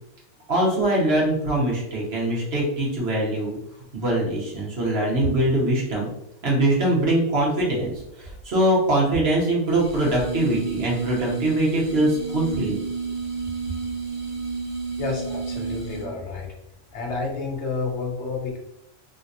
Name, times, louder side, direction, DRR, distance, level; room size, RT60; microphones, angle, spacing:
voice 1, 0.5-3.6 3.9-6.1 6.4-7.9 8.2-12.8, right 1 dB, 55° right, -4 dB, 1.3 m, -22 dB
sound 1, 9.7-16.2, right 4 dB, 30° right, 0.9 m, -31 dB
voice 2, 15.0-16.5 16.9-18.6, left 3 dB, 65° left, 0 dB, 1.1 m, -30 dB
3.3 x 2.8 x 2.5 m, 0.81 s
omnidirectional pair, 1.3 m